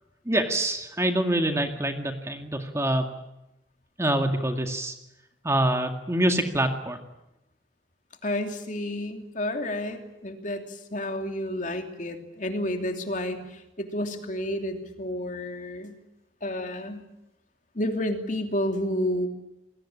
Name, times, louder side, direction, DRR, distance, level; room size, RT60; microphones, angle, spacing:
voice 1, 0.3-3.1 4.0-4.9 5.4-7.0, right 1 dB, 15° right, 5 dB, 2.1 m, -25 dB
voice 2, 8.2-16.0 16.4-17.0 17.7-19.3, left 1 dB, 40° left, 5 dB, 3.0 m, -30 dB
28.0 x 21.5 x 8.9 m, 0.91 s
head